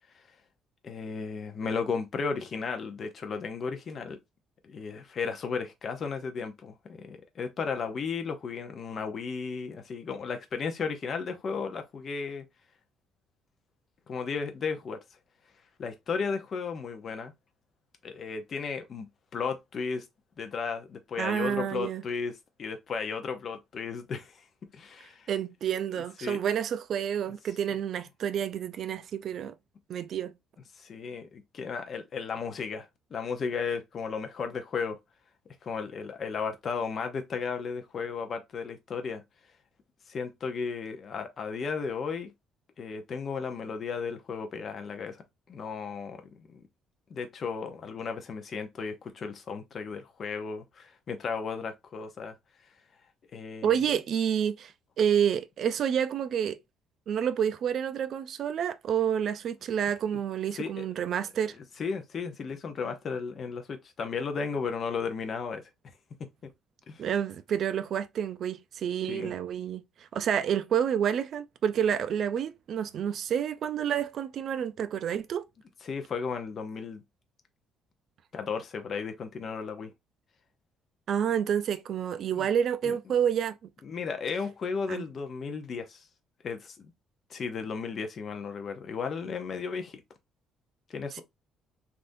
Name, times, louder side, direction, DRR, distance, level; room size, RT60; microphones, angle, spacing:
voice 1, 0.8-4.2 4.6-12.4 14.1-15.0 15.8-17.3 18.0-20.0 20.4-22.3 22.6-24.4 24.7-25.3 26.2-26.4 30.8-35.0 35.6-39.2 40.1-42.3 42.8-45.2 45.5-46.6 47.1-52.3 53.3-53.8 60.1-60.2 60.5-60.8 61.8-65.6 66.9-67.0 69.1-69.3 75.8-77.0 78.3-79.9 82.4-82.5 82.8-82.9 83.8-86.1 86.4-86.9 87.3-90.0 90.9-91.2, left 5 dB, 40° left, 0.7 m, -34 dB
voice 2, 21.2-22.0 25.3-29.5 29.9-30.3 53.6-54.7 55.0-56.6 57.1-61.5 67.0-75.4 81.1-83.6 84.9-85.0, right 8 dB, 50° right, 0.4 m, -29 dB
3.4 x 2.6 x 2.5 m
cardioid pair, 150°, 0 cm